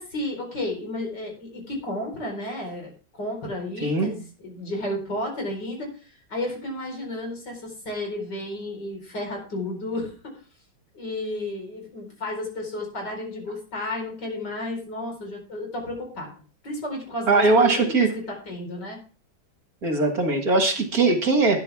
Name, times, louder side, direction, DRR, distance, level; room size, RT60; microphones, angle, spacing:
voice 1, 0.0-10.3 10.9-16.3 16.6-19.0, left 1 dB, 55° left, 1 dB, 5.1 m, -32 dB
voice 2, 17.3-18.1 19.8-21.6, right 3 dB, 50° right, 5 dB, 2.0 m, -20 dB
12.5 x 10.5 x 3.5 m, 0.37 s
omnidirectional pair, 2.2 m